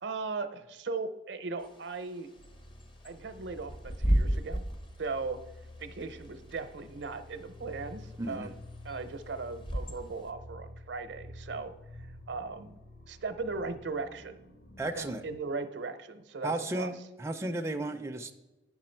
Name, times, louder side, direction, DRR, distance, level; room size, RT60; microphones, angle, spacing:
voice 1, 0.0-2.3 3.0-4.6 5.0-5.4 5.8-8.6 8.8-11.7 12.3-12.8 13.1-14.4 14.9-16.9, right 4 dB, 70° right, 10 dB, 0.6 m, -38 dB
Bird / Wind, 1.6-10.3, right 1 dB, 30° left, 0.7 m, -34 dB
sound 1, 2.4-15.4, left 1 dB, 60° left, 1.0 m, -50 dB
voice 2, 8.2-8.5 14.8-15.2 16.4-18.4, right 2 dB, 15° right, 4 dB, 0.4 m, -34 dB
9.0 x 6.0 x 4.4 m, 1.1 s
head